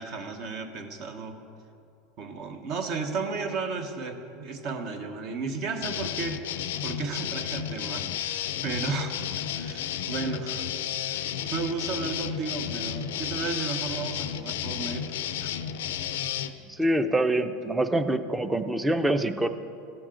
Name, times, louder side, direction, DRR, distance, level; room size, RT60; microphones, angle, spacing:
voice 1, 0.0-1.4 2.2-9.2 9.5-10.7 11.0-15.1 15.4-15.5, right 4 dB, 55° right, 6 dB, 1.1 m, -34 dB
sound 1, 5.8-16.5, left 10 dB, 85° left, 0.4 m, -32 dB
voice 2, 16.6-19.5, right 1 dB, 10° right, 9 dB, 0.5 m, -25 dB
15.5 x 6.1 x 3.8 m, 2.6 s
supercardioid pair, 115°, 0 cm